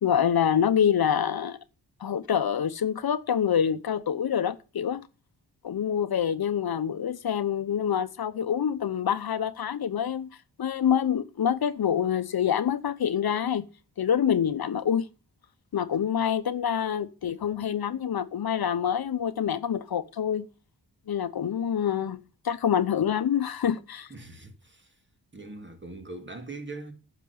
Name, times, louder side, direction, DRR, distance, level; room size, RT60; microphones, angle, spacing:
voice 1, 0.0-1.6 2.0-5.0 5.6-10.3 10.6-13.7 14.0-15.1 15.7-20.5 21.1-22.2 22.4-24.1, left 8 dB, 65° left, 0.8 m, -26 dB
voice 2, 24.1-24.9 25.3-26.9, right 2 dB, 30° right, 2.5 m, -41 dB
9.2 x 6.1 x 8.5 m
cardioid pair, 75°, 39 cm